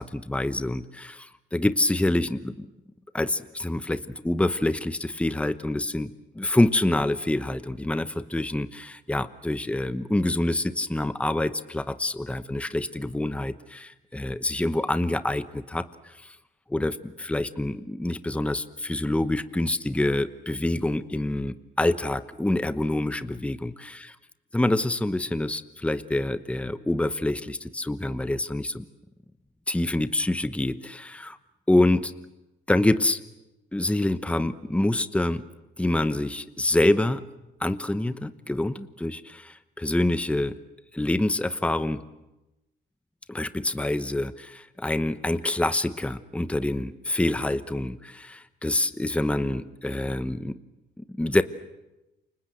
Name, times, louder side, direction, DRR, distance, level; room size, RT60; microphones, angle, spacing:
voice 1, 0.0-2.7 3.1-16.4 16.7-24.1 24.5-28.9 29.7-31.4 31.7-32.1 32.7-33.2 33.7-35.4 35.8-37.2 37.6-40.5 40.9-42.0 43.3-50.6 51.0-51.4, left 1 dB, 5° left, 12 dB, 1.0 m, -26 dB
29.0 x 25.5 x 7.9 m, 1.0 s
cardioid pair, 110°, 20 cm